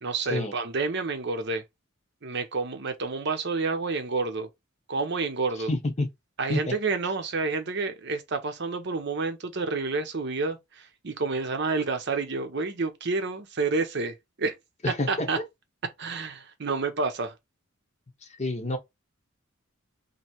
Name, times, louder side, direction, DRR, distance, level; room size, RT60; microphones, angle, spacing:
voice 1, 0.0-1.6 2.2-4.5 4.9-5.7 6.4-14.5 15.1-15.4 16.0-17.3, right 4 dB, 55° right, 0.7 m, -29 dB
voice 2, 5.7-6.1 6.5-6.8 14.8-15.3 18.2-18.8, left 2 dB, 30° left, 0.8 m, -28 dB
3.1 x 2.7 x 4.3 m
head